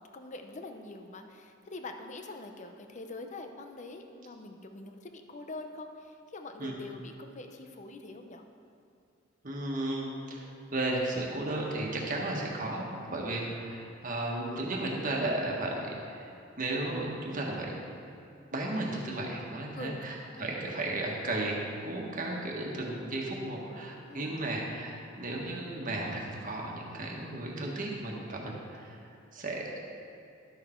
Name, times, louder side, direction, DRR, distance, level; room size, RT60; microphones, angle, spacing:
voice 1, 0.1-8.4 19.8-20.1 20.3-20.5 24.1-24.4, left 2 dB, 40° left, 5 dB, 0.7 m, -44 dB
voice 2, 9.4-16.3 16.6-17.7 18.5-21.6 21.8-29.0 29.3-29.7, right 2 dB, 45° right, -1 dB, 1.5 m, -34 dB
12.0 x 6.7 x 4.4 m, 2.6 s
head